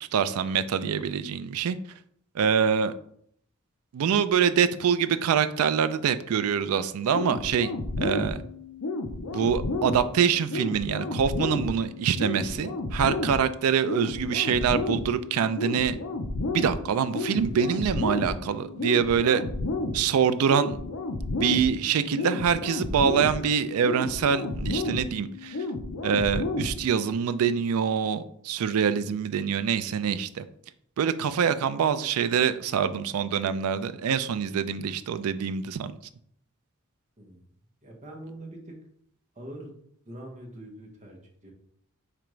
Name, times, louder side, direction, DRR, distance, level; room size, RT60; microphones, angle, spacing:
voice 1, 0.1-1.8 2.4-2.9 3.9-7.7 8.0-8.4 9.3-16.0 16.5-19.4 19.9-20.8 21.4-25.6 26.0-30.5 31.0-35.9, right 7 dB, 70° right, 13 dB, 0.3 m, -25 dB
sound 1, 7.1-27.1, left 2 dB, 70° left, 0.6 m, -32 dB
voice 2, 37.2-37.5 37.8-38.7 39.3-39.7 40.0-41.5, right 1 dB, 35° right, 0 dB, 1.0 m, -43 dB
4.9 x 3.4 x 3.1 m, 0.67 s
head